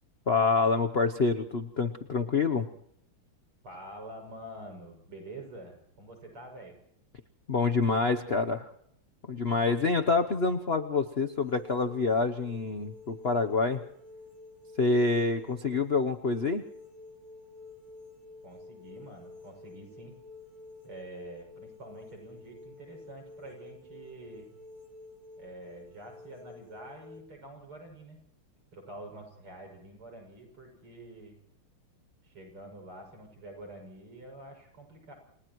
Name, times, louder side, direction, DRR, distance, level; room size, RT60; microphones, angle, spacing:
voice 1, 0.3-2.7 7.5-8.7 9.3-13.8 14.8-16.6, left 4 dB, 55° left, 7 dB, 0.7 m, -27 dB
voice 2, 3.6-6.8 18.4-20.2 20.8-24.5 25.4-28.2 28.7-31.4 32.2-35.1, right 1 dB, 85° right, 3 dB, 7.9 m, -47 dB
sound 1, 11.3-27.2, left 3 dB, 25° left, 5.3 m, -50 dB
29.5 x 29.5 x 3.1 m, 0.73 s
omnidirectional pair, 2.4 m